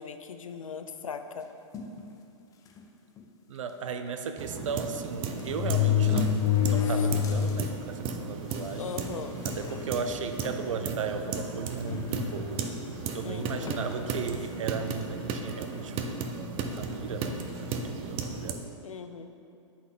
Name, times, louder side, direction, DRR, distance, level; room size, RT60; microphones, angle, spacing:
voice 1, 0.0-1.5 8.8-9.4 13.2-13.8 18.8-19.3, left 6 dB, 85° left, 8 dB, 0.5 m, -39 dB
sound 1, 1.7-2.0 2.8-2.9 3.2-3.3 4.6-4.7 5.4-7.6 8.1-8.2 9.0-9.1 9.5-9.8 10.4-10.6 11.9-12.7 13.7-13.9, left 8 dB, 20° left, 0.6 m, -27 dB
voice 2, 3.5-8.9 9.5-12.7 13.1-16.2 16.7-18.7, right 5 dB, 70° right, 7 dB, 0.6 m, -36 dB
sound 2, 4.4-18.5, right 4 dB, 30° right, 0.6 m, -35 dB
10.5 x 4.2 x 3.8 m, 2.7 s
hypercardioid pair, 120°, 17 cm